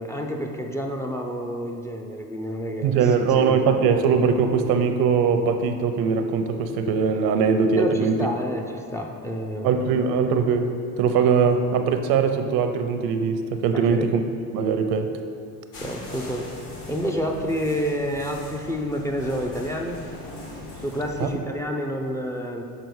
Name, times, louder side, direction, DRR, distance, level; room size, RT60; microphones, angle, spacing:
voice 1, 0.0-3.9 7.7-10.0 13.7-14.1 15.8-16.5 16.9-20.0 20.8-22.6, equal, 10° left, 2 dB, 0.4 m, -29 dB
voice 2, 2.8-8.2 9.6-14.2 14.5-15.1 21.2-21.3, right 6 dB, 85° right, 7 dB, 0.7 m, -21 dB
sound 1, 15.7-21.3, left 2 dB, 60° left, 1.7 m, -40 dB
6.7 x 4.2 x 4.7 m, 2.3 s
cardioid pair, 130°, 36 cm